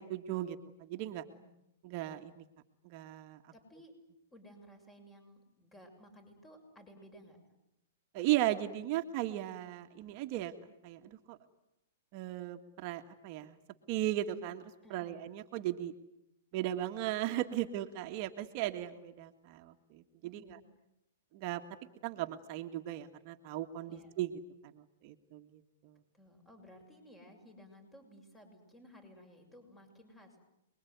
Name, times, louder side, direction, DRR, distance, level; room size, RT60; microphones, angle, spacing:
voice 1, 0.0-1.2 1.8-2.5 2.8-3.5 8.1-10.5 10.8-11.4 12.1-13.6 13.9-15.9 16.5-20.6 21.3-21.6 22.0-24.3 24.6-26.0, right 14 dB, 45° right, 6 dB, 1.8 m, -37 dB
voice 2, 3.5-3.9 4.3-7.4 14.8-15.3 20.2-20.6 23.9-24.1 26.1-30.4, equal, 15° left, 5 dB, 7.2 m, -57 dB
28.0 x 22.0 x 9.6 m, 0.85 s
hypercardioid pair, 140°, 0 cm